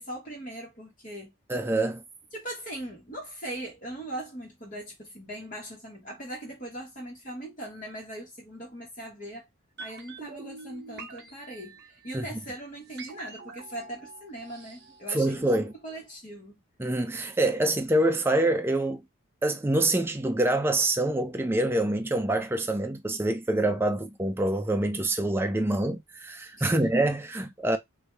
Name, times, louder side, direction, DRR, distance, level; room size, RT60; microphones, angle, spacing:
voice 1, 0.0-1.3 2.3-9.5 9.8-16.5 26.5-26.9, right 1 dB, 40° left, 1.4 m, -40 dB
voice 2, 1.5-2.0 12.1-12.3 15.1-15.7 16.8-19.0 19.4-27.8, right 1 dB, 10° right, 0.4 m, -26 dB
sound 1, 9.8-15.8 16.1-16.2, right 3 dB, 50° right, 0.8 m, -46 dB
3.4 x 2.6 x 3.3 m
head